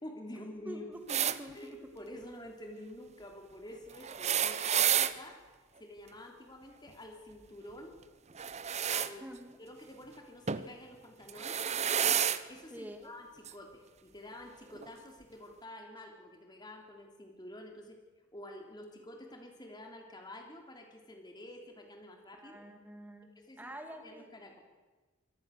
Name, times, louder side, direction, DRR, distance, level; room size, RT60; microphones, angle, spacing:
voice 1, 0.0-0.8 1.5-5.4 5.8-8.0 8.9-9.3 9.6-11.6 12.5-18.0 18.3-22.7 23.3-23.7 24.0-24.6, left 1 dB, 20° left, 3 dB, 3.3 m, -49 dB
voice 2, 0.7-1.8 9.2-9.6 12.7-13.1 22.4-23.3 23.6-24.3, equal, 10° right, 5 dB, 2.1 m, -46 dB
sound 1, 1.1-1.4 4.0-5.1 8.3-9.1 10.5-10.7 11.3-12.4 13.4-13.5 14.7-14.8, right 9 dB, 35° right, 0.8 m, -30 dB
24.5 x 18.0 x 6.6 m, 1.3 s
head